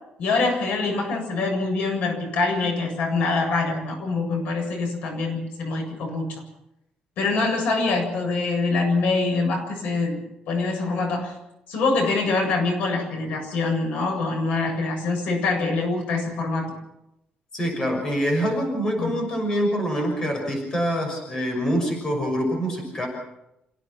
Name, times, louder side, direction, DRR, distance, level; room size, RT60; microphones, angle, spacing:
voice 1, 0.2-6.4 7.2-10.2 10.5-11.3 11.7-16.7 19.0-19.1, left 3 dB, 75° left, 3 dB, 7.7 m, -24 dB
voice 2, 17.5-23.1, equal, 25° left, 2 dB, 6.2 m, -25 dB
29.0 x 16.5 x 6.1 m, 0.85 s
cardioid pair, 175°, 3 cm